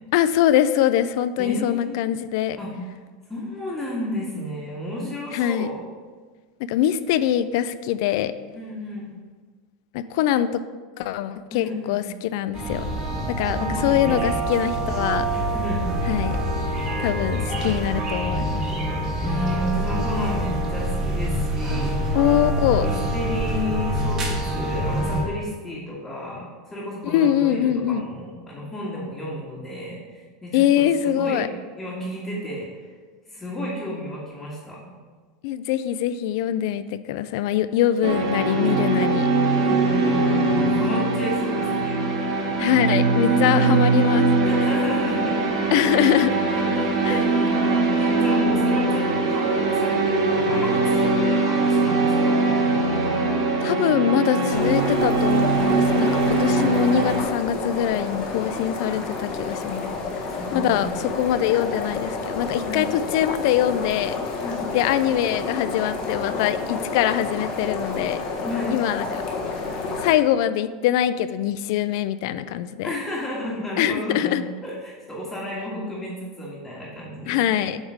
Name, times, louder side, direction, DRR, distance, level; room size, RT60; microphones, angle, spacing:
voice 1, 0.1-2.6 5.3-5.7 6.7-8.3 9.9-10.6 11.0-12.8 13.3-15.3 16.1-16.4 17.0-18.6 22.1-22.9 27.0-28.1 30.5-31.5 35.4-39.3 42.6-44.3 45.7-46.3 47.1-47.2 53.6-59.9 60.5-64.2 64.7-68.2 68.7-69.2 70.0-72.9 73.8-74.4 77.3-77.8, left 11 dB, 60° left, 13 dB, 0.4 m, -23 dB
voice 2, 1.4-2.0 2.6-2.7 3.3-5.8 8.5-9.1 11.5-12.0 13.6-14.2 15.5-15.9 17.3-17.5 19.2-22.2 22.8-31.5 31.8-32.7 33.3-34.8 39.6-42.0 43.2-43.7 44.4-45.7 46.3-52.5 59.9-60.0 60.3-61.0 62.6-62.8 64.4-64.6 68.4-68.8 72.8-77.7, left 1 dB, 10° left, -8 dB, 1.7 m, -32 dB
sound 1, 12.5-25.2, right 1 dB, 30° right, 1.7 m, -25 dB
sound 2, 38.0-57.2, right 3 dB, 75° right, 2.0 m, -21 dB
sound 3, 54.5-70.1, left 4 dB, 40° left, 1.4 m, -30 dB
8.0 x 3.6 x 6.4 m, 1.4 s
supercardioid pair, 140°, 2 cm